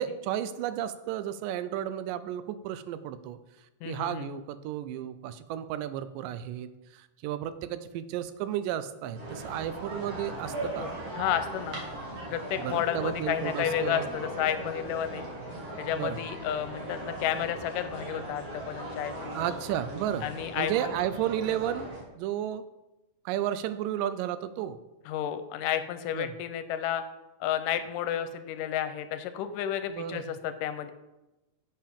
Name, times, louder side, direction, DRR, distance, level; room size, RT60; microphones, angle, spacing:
voice 1, 0.0-3.4 3.8-10.9 12.6-14.1 15.9-16.2 19.4-20.3 20.6-21.9 22.2-22.6 23.3-24.8 26.1-26.3 29.9-30.2, right 11 dB, 85° right, 12 dB, 2.2 m, -33 dB
voice 2, 3.8-4.3 11.2-11.8 12.3-15.3 15.8-19.4 20.2-20.9 25.1-27.0 27.4-30.9, left 10 dB, 85° left, 10 dB, 2.2 m, -31 dB
sound 1, 9.1-22.0, right 1 dB, 45° right, 2.9 m, -39 dB
10.5 x 7.6 x 3.5 m, 1.0 s
omnidirectional pair, 3.8 m